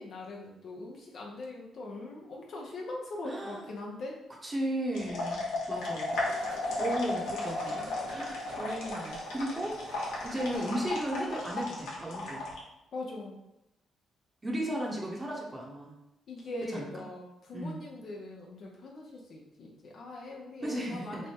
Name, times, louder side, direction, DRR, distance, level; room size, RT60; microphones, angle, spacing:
voice 1, 0.0-4.2 12.9-13.4 16.3-21.3, left 2 dB, 60° left, -2 dB, 0.6 m, -41 dB
voice 2, 3.2-3.7 4.4-6.2 6.8-9.8 10.2-12.5 14.4-15.9 16.7-16.9 17.5-17.9 20.6-21.2, right 1 dB, 20° right, -3 dB, 0.8 m, -35 dB
sound 1, 4.9-12.6, left 2 dB, 90° left, 1.0 m, -34 dB
sound 2, 5.8-11.7, right 1 dB, 90° right, 1.2 m, -48 dB
3.3 x 2.2 x 4.3 m, 0.90 s
cardioid pair, 90°, 0 cm